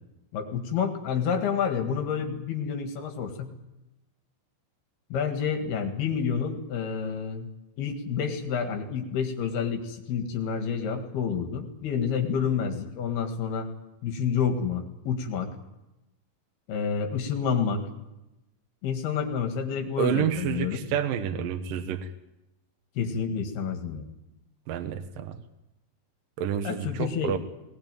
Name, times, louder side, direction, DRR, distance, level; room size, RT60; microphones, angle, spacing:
voice 1, 0.3-3.5 5.1-7.5 7.8-13.7 14.0-15.5 16.7-17.9 18.8-20.8 23.0-24.1 26.6-27.3, left 6 dB, 60° left, 5 dB, 3.5 m, -29 dB
voice 2, 20.0-22.1 24.7-25.4 26.4-27.4, right 9 dB, 80° right, 9 dB, 2.0 m, -29 dB
20.0 x 19.5 x 9.1 m, 0.94 s
omnidirectional pair, 5.6 m